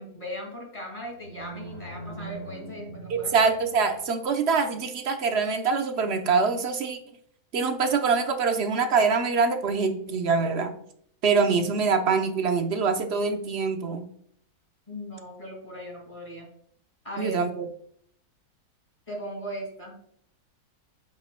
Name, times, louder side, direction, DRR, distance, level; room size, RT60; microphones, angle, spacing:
voice 1, 0.0-3.3 14.9-16.5 17.0-17.4 19.1-19.9, equal, 20° left, 0 dB, 2.3 m, -38 dB
sound 1, 1.1-4.2, right 3 dB, 70° left, 3.3 m, -42 dB
voice 2, 3.1-7.0 7.5-10.7 11.2-14.1 17.2-17.7, right 5 dB, 50° right, 6 dB, 0.9 m, -24 dB
8.2 x 8.1 x 2.2 m, 0.64 s
omnidirectional pair, 1.7 m